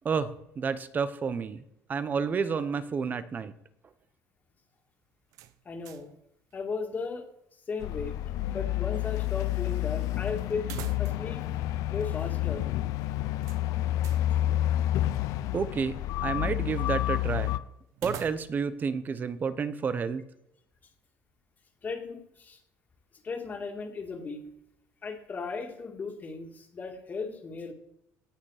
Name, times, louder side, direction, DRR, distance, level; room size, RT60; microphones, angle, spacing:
voice 1, 0.0-1.6 1.9-3.5 15.5-17.6 18.0-20.2, right 5 dB, 30° right, 14 dB, 0.8 m, -30 dB
sound 1, 5.3-6.2 6.5-6.6 10.6-11.4 11.7-11.8 13.4-14.3 17.9-18.8, right 12 dB, 75° right, 0.8 m, -44 dB
voice 2, 5.7-6.1 6.5-7.2 7.7-8.2 8.5-10.7 11.0-11.4 11.9-12.6 14.3-14.4 21.8-22.6 23.2-24.4 25.0-27.7, left 4 dB, 30° left, 3 dB, 2.3 m, -36 dB
sound 2, 7.8-17.6, left 14 dB, 75° left, 0.6 m, -29 dB
17.5 x 6.6 x 5.0 m, 0.80 s
cardioid pair, 130°, 6 cm